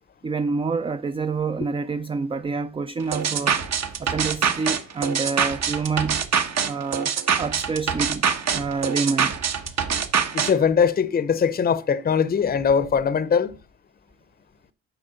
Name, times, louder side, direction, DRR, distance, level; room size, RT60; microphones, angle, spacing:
voice 1, 0.2-3.6 4.0-6.2 6.7-7.1 7.4-8.2 8.5-9.4, right 4 dB, 20° right, 0.4 m, -27 dB
sound 1, 3.1-10.5, right 7 dB, 60° right, 1.3 m, -24 dB
voice 2, 10.3-13.5, left 6 dB, 30° left, 0.7 m, -21 dB
8.8 x 4.7 x 6.9 m
cardioid pair, 90°, 30 cm